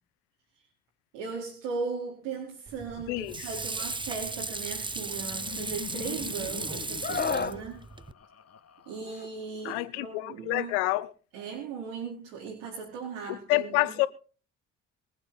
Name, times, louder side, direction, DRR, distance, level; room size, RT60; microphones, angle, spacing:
voice 1, 1.1-7.8 8.9-10.7 11.3-13.9, right 5 dB, 85° right, 4.6 m, -37 dB
Water / Sink (filling or washing), 2.7-8.1, right 3 dB, 15° right, 0.9 m, -36 dB
voice 2, 3.1-3.5 9.6-11.1 13.3-14.1, left 19 dB, 90° left, 1.1 m, -28 dB
Laughter, 4.6-9.6, left 7 dB, 45° left, 1.9 m, -45 dB
Screaming, 7.0-7.6 9.1-9.3, left 5 dB, 25° left, 1.4 m, -30 dB
24.0 x 8.0 x 4.3 m
hypercardioid pair, 55°, 36 cm